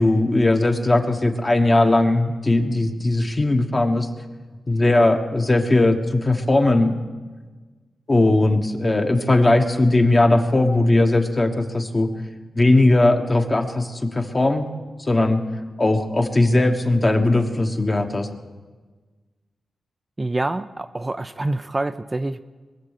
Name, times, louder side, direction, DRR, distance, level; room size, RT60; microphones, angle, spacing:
voice 1, 0.0-4.1 4.7-7.0 8.1-12.1 12.6-14.7 15.0-15.4 15.8-18.3, left 2 dB, 30° left, 4 dB, 1.4 m, -18 dB
voice 2, 20.2-22.4, right 2 dB, 25° right, 9 dB, 0.4 m, -26 dB
22.0 x 7.6 x 6.6 m, 1.4 s
cardioid pair, 80°, 0 cm